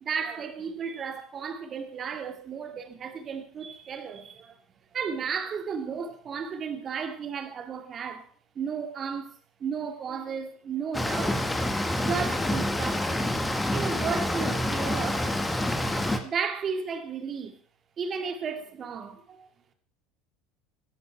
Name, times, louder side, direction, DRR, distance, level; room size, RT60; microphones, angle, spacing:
voice 1, 0.0-4.6 4.9-8.3 8.6-9.3 9.6-11.5 12.0-13.3 13.7-15.3 16.0-17.6 18.0-19.5, right 6 dB, 35° right, 2.3 m, -34 dB
sound 1, 10.9-16.2, left 1 dB, 10° left, 1.9 m, -27 dB
17.0 x 10.5 x 4.6 m
figure-of-eight pair, 70°, 0 cm